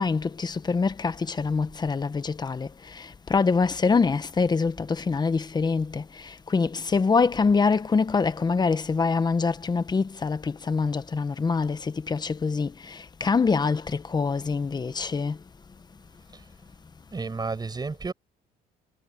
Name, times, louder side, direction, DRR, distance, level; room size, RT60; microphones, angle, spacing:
voice 1, 0.0-2.7 3.3-6.0 6.5-12.7 13.2-15.4, left 4 dB, 25° left, 1.2 m, -24 dB
voice 2, 17.1-18.1, right 4 dB, 25° right, 6.9 m, -31 dB
cardioid pair, 110°, 17 cm